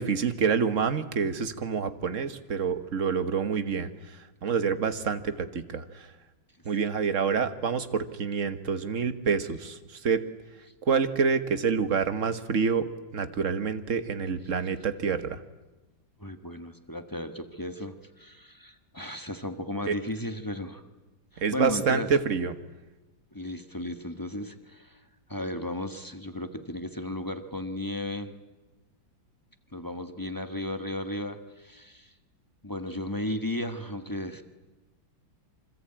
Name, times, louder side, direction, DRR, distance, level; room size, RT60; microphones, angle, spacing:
voice 1, 0.0-6.1 6.6-10.2 10.8-12.8 13.1-15.4 19.9-20.0 21.4-22.5, right 6 dB, 45° right, 11 dB, 1.5 m, -27 dB
voice 2, 16.2-20.8 21.3-22.1 23.3-25.0 25.3-28.3 29.7-32.1 32.6-34.4, left 1 dB, 10° left, 8 dB, 1.1 m, -35 dB
26.5 x 25.0 x 8.8 m, 1.1 s
omnidirectional pair, 2.1 m